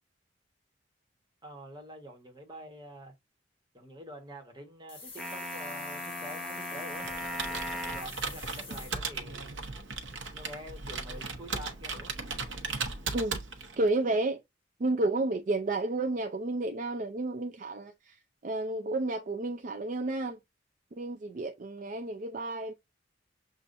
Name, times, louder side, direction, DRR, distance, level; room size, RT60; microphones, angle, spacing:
voice 1, 1.4-3.1 3.7-9.6 10.3-12.1, equal, 25° right, 1.3 m, -47 dB
sound 1, 4.9-8.9, left 4 dB, 30° left, 1.8 m, -46 dB
sound 2, 5.2-8.2, equal, ahead, 0.8 m, -38 dB
Computer keyboard, 7.0-13.9, right 4 dB, 85° right, 0.9 m, -37 dB
voice 2, 13.8-14.4 14.8-20.4 20.9-22.7, right 2 dB, 45° right, 0.4 m, -31 dB
6.8 x 2.5 x 2.5 m
head